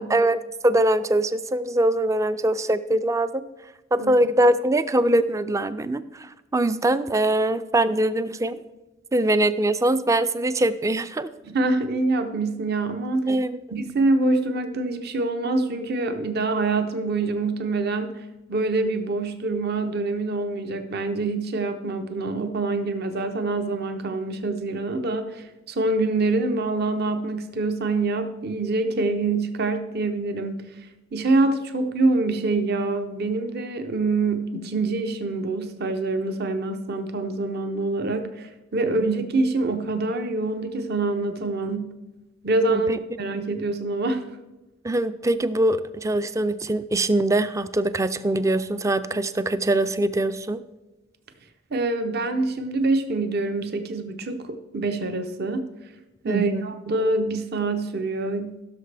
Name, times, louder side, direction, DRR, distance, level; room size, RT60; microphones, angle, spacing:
voice 1, 0.0-3.4 3.9-8.6 9.1-11.3 13.3-13.6 39.0-39.1 42.7-43.0 44.8-50.6 56.3-56.7, right 1 dB, 15° right, 13 dB, 0.3 m, -23 dB
voice 2, 11.4-13.3 13.7-18.1 18.5-30.7 31.1-41.9 42.4-42.9 43.2-44.2 51.7-55.7 56.2-58.6, right 3 dB, 55° right, 8 dB, 0.7 m, -25 dB
15.5 x 6.6 x 3.4 m, 1.0 s
head